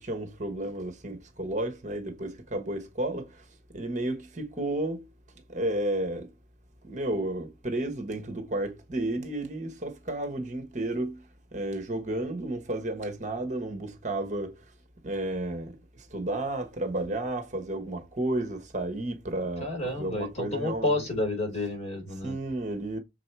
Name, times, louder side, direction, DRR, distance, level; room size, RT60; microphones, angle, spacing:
voice 1, 0.0-3.4 3.7-5.1 5.5-6.3 6.8-11.2 11.5-14.6 15.0-21.0 22.2-23.0, right 1 dB, 40° right, 1.3 m, -32 dB
voice 2, 19.6-22.3, left 1 dB, 35° left, 4.1 m, -30 dB
6.6 x 4.8 x 4.7 m
head